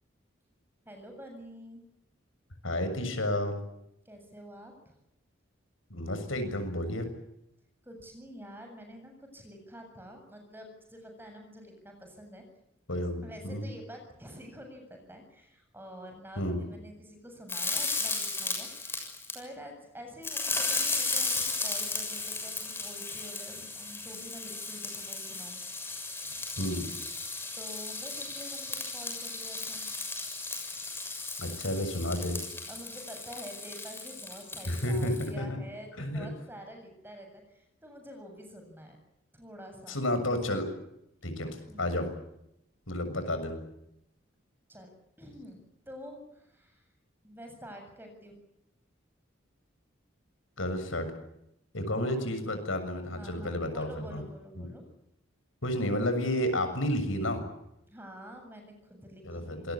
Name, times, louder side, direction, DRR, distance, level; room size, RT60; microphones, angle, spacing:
voice 1, 0.9-1.8 4.0-5.0 7.8-12.4 13.2-18.7 19.3-25.6 27.6-29.9 32.7-39.0 39.3-40.0 41.7-42.0 44.7-44.9 45.2-46.9 47.2-48.3 51.9-52.1 52.6-52.8 53.1-54.8 57.9-59.7, equal, 10° right, 4 dB, 7.7 m, -47 dB
voice 2, 2.6-3.6 5.9-7.1 12.9-13.7 16.4-16.6 26.6-26.8 31.4-32.4 34.7-35.6 36.0-36.3 39.9-40.7 41.2-42.1 42.9-43.6 50.6-51.1 51.7-54.2 54.6-54.7 55.6-57.4 59.2-59.7, left 1 dB, 85° left, 8 dB, 6.9 m, -31 dB
sound 1, 17.5-19.3 20.2-35.3, left 3 dB, 10° left, 6.9 m, -35 dB
27.5 x 21.0 x 8.6 m, 0.81 s
head